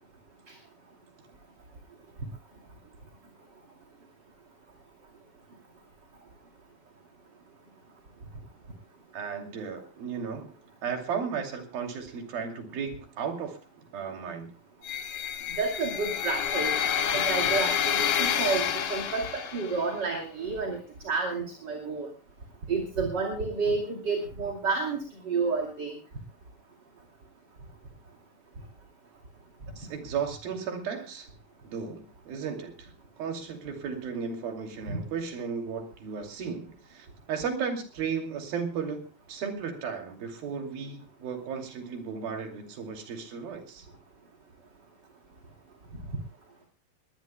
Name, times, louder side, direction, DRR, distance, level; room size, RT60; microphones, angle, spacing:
voice 1, 9.1-10.5 10.8-13.6 13.9-14.5 29.8-31.3 31.6-32.9 33.2-43.9, right 6 dB, 90° right, 3 dB, 4.5 m, -35 dB
sound 1, 14.8-19.9, left 9 dB, 70° left, 3.3 m, -28 dB
voice 2, 15.6-16.8 17.1-20.8 21.0-22.1 22.7-25.0 25.2-25.9 34.9-35.0, right 4 dB, 35° right, 1 dB, 2.7 m, -30 dB
22.0 x 19.5 x 2.2 m, 0.32 s
omnidirectional pair, 4.1 m